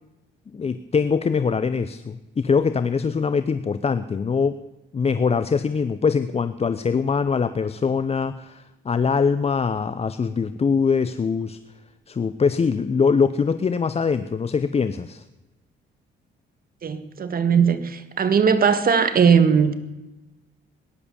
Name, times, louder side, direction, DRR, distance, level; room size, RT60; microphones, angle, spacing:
voice 1, 0.5-4.6 4.9-11.6 12.1-15.2, left 5 dB, 30° left, 0.7 m, -23 dB
voice 2, 16.8-19.7, right 6 dB, 45° right, 1.8 m, -19 dB
18.0 x 11.0 x 7.0 m
cardioid pair, 90°, 20 cm